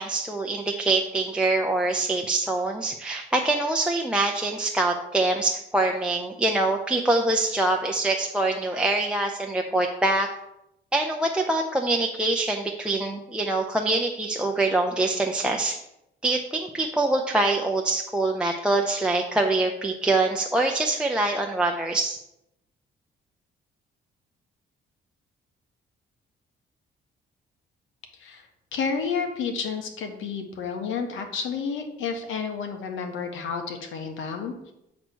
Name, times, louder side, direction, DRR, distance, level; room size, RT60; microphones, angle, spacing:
voice 1, 0.0-10.3 10.9-15.8 16.2-22.2, right 2 dB, 5° right, 1 dB, 0.6 m, -24 dB
voice 2, 28.7-34.7, left 5 dB, 80° left, 5 dB, 1.2 m, -31 dB
7.9 x 3.2 x 6.2 m, 0.85 s
cardioid pair, 90°, 20 cm